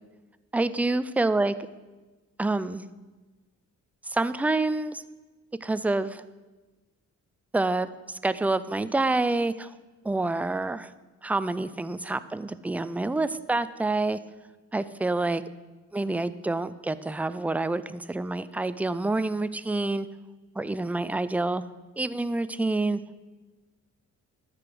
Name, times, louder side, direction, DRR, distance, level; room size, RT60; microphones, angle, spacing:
voice 1, 0.5-1.5 2.4-2.9 4.1-5.0 5.6-6.2 7.5-9.7 10.0-10.9 11.2-14.2 14.7-15.4 15.9-20.1 20.6-21.6 22.0-23.0, right 2 dB, 5° right, 14 dB, 0.3 m, -27 dB
13.0 x 5.0 x 7.7 m, 1.2 s
cardioid pair, 125°, 29 cm